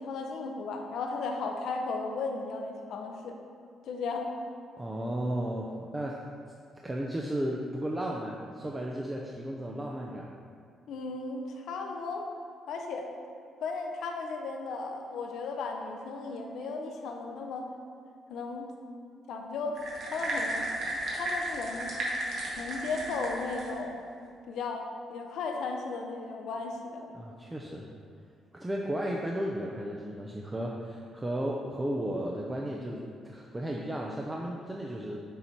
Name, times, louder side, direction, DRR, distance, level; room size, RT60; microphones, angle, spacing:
voice 1, 0.0-3.4 3.8-4.3 10.9-12.3 12.7-13.1 13.6-17.7 18.3-18.7 19.3-19.8 20.1-20.7 21.1-22.0 22.6-24.0 24.5-27.1, left 4 dB, 75° left, 2 dB, 0.6 m, -35 dB
voice 2, 4.8-6.2 6.8-10.3 27.1-27.9 28.5-35.2, right 1 dB, 15° right, -2 dB, 0.6 m, -34 dB
sound 1, 19.8-23.8, right 1 dB, 65° right, 1.6 m, -34 dB
7.0 x 4.2 x 4.5 m, 2.3 s
cardioid pair, 90°, 0 cm